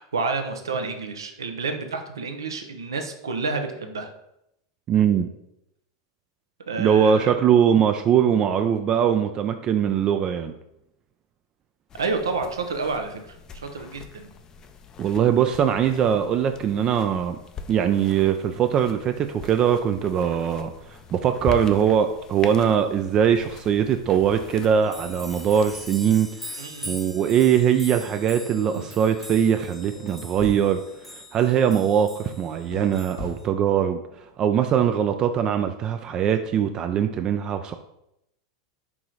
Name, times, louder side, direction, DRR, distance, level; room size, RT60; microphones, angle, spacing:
voice 1, 0.0-4.1 6.7-7.3 11.9-14.3 26.6-27.0 28.7-28.8, right 4 dB, 85° right, 6 dB, 0.6 m, -29 dB
voice 2, 4.9-5.3 6.8-10.5 15.0-17.4 17.7-20.7 21.1-30.8 31.1-34.0 34.4-37.8, right 8 dB, 35° right, 7 dB, 0.3 m, -21 dB
sound 1, 11.9-25.9, left 4 dB, 30° left, 0.4 m, -42 dB
sound 2, 24.1-24.2 24.5-33.5, left 1 dB, 5° left, 0.9 m, -42 dB
sound 3, 29.9-30.1 30.4-30.6 32.7-32.9 33.2-33.3, left 1 dB, 90° left, 1.5 m, -34 dB
4.7 x 3.0 x 3.8 m, 0.81 s
hypercardioid pair, 100°, 2 cm